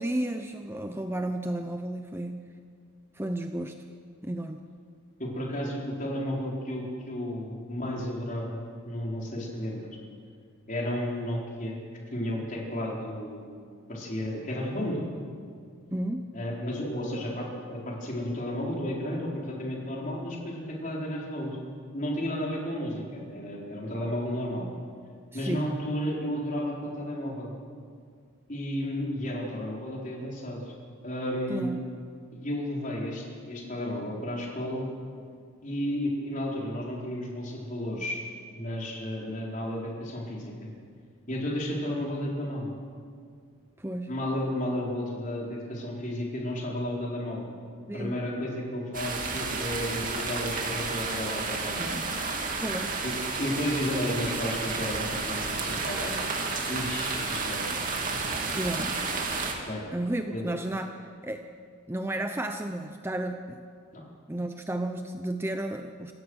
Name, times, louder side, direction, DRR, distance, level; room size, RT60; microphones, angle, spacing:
voice 1, 0.0-2.4 3.1-3.7 4.2-4.6 15.9-16.3 25.3-25.7 31.5-31.8 43.8-44.1 47.9-48.2 51.8-52.2 52.6-53.0 58.5-59.0 59.9-60.9 61.2-61.4 61.9-63.6 64.3-66.1, right 1 dB, 10° right, 6 dB, 0.7 m, -32 dB
voice 2, 5.2-9.9 10.7-11.8 12.1-13.5 13.9-15.1 16.3-21.6 21.9-24.6 25.3-27.5 28.5-30.7 31.0-31.8 32.3-34.9 35.6-38.2 38.5-40.7 41.3-42.8 44.1-47.5 47.9-52.1 53.0-53.1 53.4-56.1 56.7-57.7 59.7-59.9 60.3-60.5 63.9-64.0, left 1 dB, 40° left, -3 dB, 4.4 m, -33 dB
sound 1, 48.9-59.5, right 4 dB, 40° right, 2.5 m, -31 dB
27.5 x 15.0 x 6.5 m, 2.1 s
head